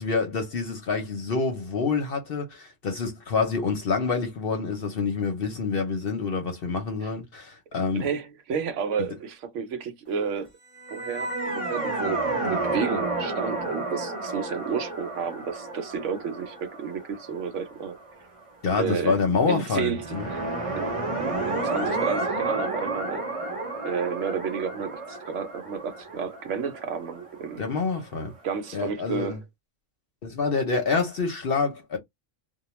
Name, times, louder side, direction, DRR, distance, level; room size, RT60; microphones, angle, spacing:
voice 1, 0.0-8.1 18.6-20.3 27.6-28.3 28.7-29.4 30.2-32.0, left 4 dB, 55° left, 0.8 m, -27 dB
voice 2, 7.9-10.5 10.9-18.0 18.8-20.5 20.8-20.9 21.2-23.2 23.8-27.7 28.4-29.4, right 6 dB, 70° right, 0.9 m, -31 dB
sound 1, 10.8-18.0 19.9-27.7, right 2 dB, 30° right, 0.7 m, -31 dB
2.2 x 2.2 x 3.0 m
omnidirectional pair, 1.4 m